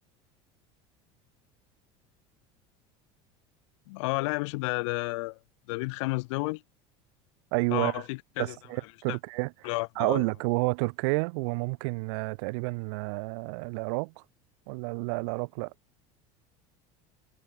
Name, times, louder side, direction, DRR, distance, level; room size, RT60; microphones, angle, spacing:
voice 1, 3.9-5.4 5.7-6.6 7.7-8.6 9.1-9.2 9.6-10.2, left 25 dB, 85° left, 0.6 m, -31 dB
voice 2, 7.5-8.0 8.4-9.5 10.0-14.1 14.7-15.7, right 32 dB, 75° right, 0.9 m, -30 dB
supercardioid pair, 125°, 15 cm